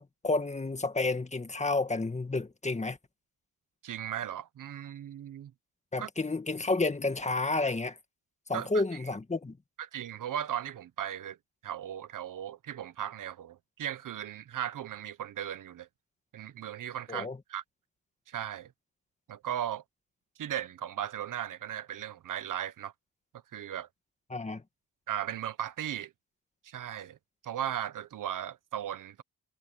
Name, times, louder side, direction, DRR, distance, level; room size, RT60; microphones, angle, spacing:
voice 1, 0.2-3.0 5.9-8.0 8.5-9.6 17.1-17.4 24.3-24.6, left 3 dB, 20° left, 1.8 m, -30 dB
voice 2, 3.8-5.5 6.0-6.1 8.5-8.8 9.8-11.4 11.6-15.9 16.3-17.6 18.3-18.7 19.3-19.8 20.4-22.9 23.5-23.9 25.1-26.1 26.6-27.2 27.4-29.2, right 10 dB, 65° right, 1.1 m, -37 dB
cardioid pair, 95°, 34 cm